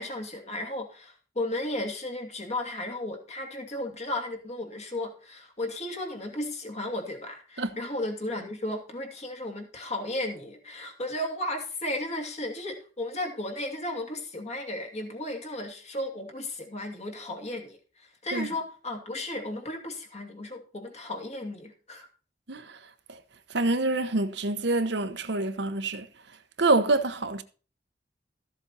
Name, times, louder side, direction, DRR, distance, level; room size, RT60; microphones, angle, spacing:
voice 1, 0.0-22.1, left 1 dB, 40° left, 2.7 m, -34 dB
voice 2, 22.5-22.8 23.5-26.1 26.6-27.4, right 2 dB, 65° right, 1.1 m, -26 dB
14.0 x 7.5 x 4.2 m
head